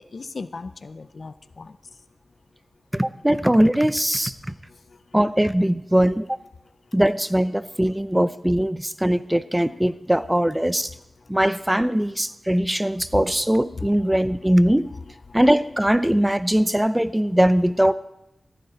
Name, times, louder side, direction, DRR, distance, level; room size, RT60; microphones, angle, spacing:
voice 1, 0.1-1.7 13.1-13.2 13.8-13.9 15.3-15.4, left 4 dB, 65° left, 13 dB, 0.5 m, -35 dB
voice 2, 2.9-4.3 5.1-6.4 6.9-10.9 11.3-14.9 15.3-17.9, right 1 dB, 10° right, 14 dB, 0.6 m, -20 dB
15.0 x 9.6 x 4.0 m, 0.83 s
cardioid pair, 40°, 0 cm